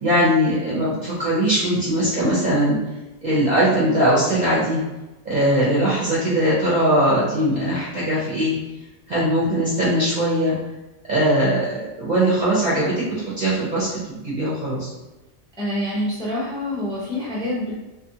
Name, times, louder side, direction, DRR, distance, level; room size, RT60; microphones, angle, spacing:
voice 1, 0.0-2.8 3.2-4.8 5.2-8.6 9.1-10.6 11.1-14.9, right 1 dB, 40° right, -9 dB, 0.7 m, -20 dB
voice 2, 15.6-17.7, left 1 dB, 5° left, -7 dB, 0.6 m, -26 dB
2.6 x 2.6 x 2.7 m, 1.0 s
omnidirectional pair, 1.5 m